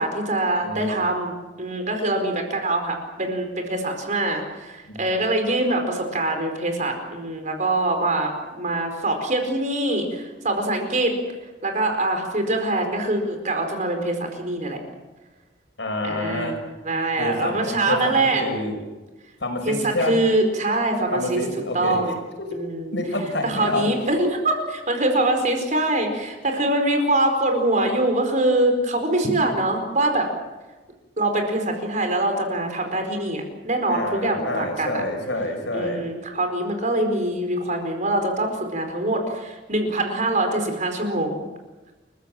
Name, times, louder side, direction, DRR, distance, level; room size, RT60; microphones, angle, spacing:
voice 1, 0.0-11.1 11.6-14.8 16.0-18.4 19.6-21.4 21.7-22.1 22.5-23.0 23.4-30.3 31.2-35.0 35.7-41.4, right 2 dB, 45° right, 5 dB, 4.7 m, -24 dB
voice 2, 15.8-16.6 17.2-18.8 19.4-20.1 21.1-22.1 22.5-22.6 22.9-23.9 33.9-36.1, left 1 dB, 70° left, 5 dB, 5.3 m, -27 dB
29.5 x 15.0 x 7.7 m, 1.2 s
head